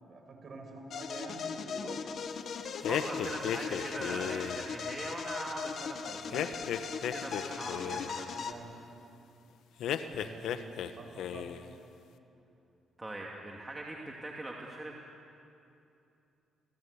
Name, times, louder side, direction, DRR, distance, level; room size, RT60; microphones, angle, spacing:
voice 1, 0.0-2.2 8.3-8.7 10.1-11.5, right 2 dB, 45° right, 2 dB, 6.3 m, -47 dB
sound 1, 0.9-8.5, left 6 dB, 60° left, 1.5 m, -39 dB
sound 2, 2.8-4.7 6.3-8.1 9.8-10.9 11.2-11.7, left 9 dB, 80° left, 1.1 m, -35 dB
voice 2, 2.8-8.3 13.0-15.0, right 2 dB, 15° right, -1 dB, 2.5 m, -41 dB
27.0 x 17.5 x 8.4 m, 2.7 s
cardioid pair, 90°, 0 cm